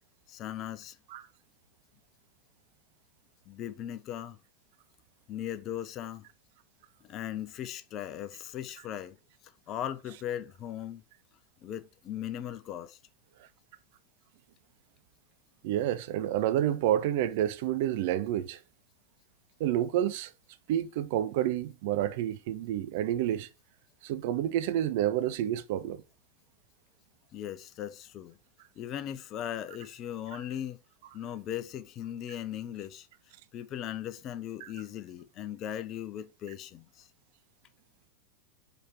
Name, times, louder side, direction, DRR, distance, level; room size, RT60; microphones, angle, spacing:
voice 1, 0.3-1.0 3.5-4.4 5.3-6.3 7.0-9.2 9.7-11.0 11.6-13.0 27.3-28.4 28.8-30.8 31.1-33.1 33.5-37.1, left 11 dB, 35° left, 0.6 m, -38 dB
voice 2, 15.6-18.6 19.6-20.3 20.7-23.5 24.0-26.0 34.6-34.7, right 11 dB, 50° right, 0.6 m, -29 dB
5.3 x 4.4 x 4.4 m
figure-of-eight pair, 90°, 0 cm